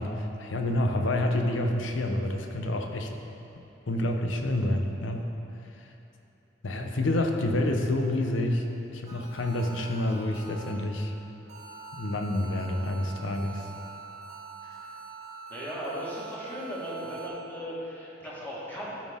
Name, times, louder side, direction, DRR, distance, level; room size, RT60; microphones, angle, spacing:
voice 1, 0.0-3.1 3.9-5.3 6.6-11.1 11.9-13.7, left 1 dB, 70° left, 4 dB, 0.7 m, -28 dB
sound 1, 9.1-11.1 11.5-17.3, right 4 dB, 35° right, 1.0 m, -44 dB
voice 2, 15.5-19.0, equal, 10° left, -8 dB, 1.6 m, -37 dB
12.5 x 4.2 x 3.6 m, 2.9 s
head